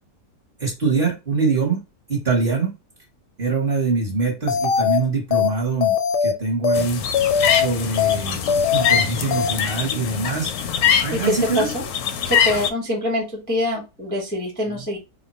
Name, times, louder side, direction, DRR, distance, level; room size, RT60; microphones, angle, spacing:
voice 1, 0.6-1.8 2.1-2.7 3.4-6.0 6.2-7.0 7.5-10.5 11.0-11.7 14.7-14.8, right 4 dB, 40° right, -1 dB, 0.9 m, -23 dB
sound 1, 4.5-5.0 5.3-5.5 5.8-6.3 6.6-6.8 7.1-7.7 8.0-8.2 8.5-9.0 9.3-9.5, left 7 dB, 85° left, 1.2 m, -20 dB
sound 2, 6.7-12.7, left 8 dB, 70° left, 0.9 m, -23 dB
voice 2, 11.1-11.8 12.2-15.0, equal, 10° left, -1 dB, 0.5 m, -24 dB
2.9 x 2.1 x 4.0 m, 0.27 s
omnidirectional pair, 1.8 m